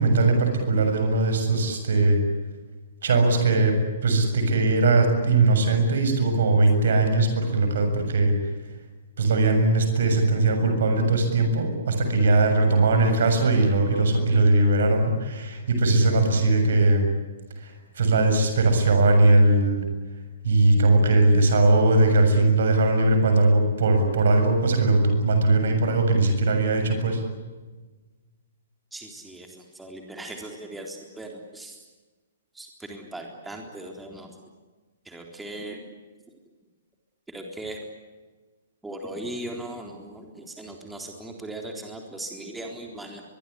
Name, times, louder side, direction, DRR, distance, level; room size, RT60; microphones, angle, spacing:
voice 1, 0.0-2.2 3.0-3.8 4.0-8.4 9.2-17.1 17.6-19.8 20.4-27.2, right 2 dB, 60° right, 6 dB, 7.1 m, -20 dB
voice 2, 28.9-31.8 32.5-34.3 35.1-35.8 37.3-37.8 38.8-43.2, right 1 dB, 5° right, 2 dB, 3.8 m, -38 dB
23.0 x 23.0 x 9.9 m, 1.3 s
figure-of-eight pair, 120°, 0 cm